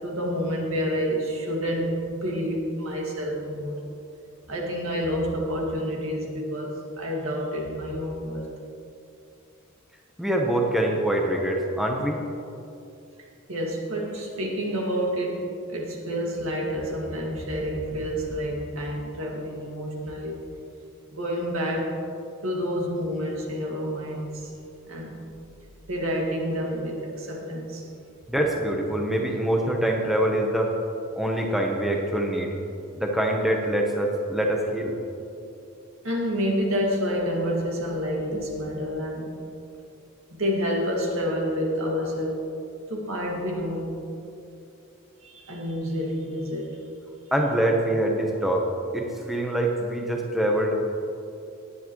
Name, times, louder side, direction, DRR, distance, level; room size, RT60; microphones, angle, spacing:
voice 1, 0.0-3.8 4.5-8.4 13.5-20.4 21.1-22.0 22.4-24.5 24.9-25.2 25.9-27.9 36.0-39.4 40.3-42.4 42.9-43.9 45.2-46.8, equal, 65° right, -1 dB, 2.0 m, -28 dB
voice 2, 10.2-12.2 28.3-30.7 31.2-32.5 33.0-35.0 47.3-48.6 48.9-50.8, right 1 dB, ahead, -1 dB, 0.9 m, -24 dB
17.5 x 9.9 x 3.1 m, 2.7 s
head